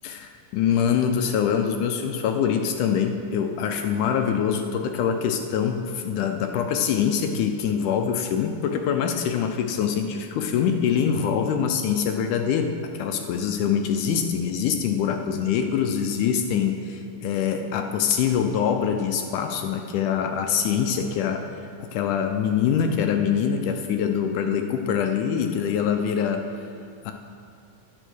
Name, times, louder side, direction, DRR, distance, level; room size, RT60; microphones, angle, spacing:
voice 1, 0.0-12.7 13.0-21.4 21.8-26.4 27.1-27.2, left 7 dB, 80° left, 5 dB, 2.0 m, -24 dB
10.0 x 9.7 x 6.2 m, 2.4 s
omnidirectional pair, 3.9 m